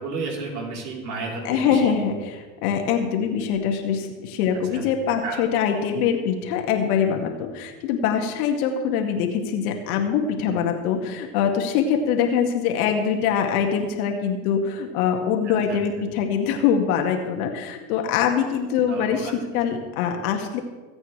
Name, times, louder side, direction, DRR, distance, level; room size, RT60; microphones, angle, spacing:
voice 1, 0.0-1.9 4.5-4.8 5.2-5.4 15.4-15.8 18.9-19.3, right 3 dB, 75° right, -1 dB, 3.9 m, -32 dB
voice 2, 1.4-2.4 2.6-20.6, left 7 dB, 60° left, 4 dB, 2.1 m, -23 dB
25.0 x 8.8 x 3.3 m, 1.3 s
hypercardioid pair, 115°, 50 cm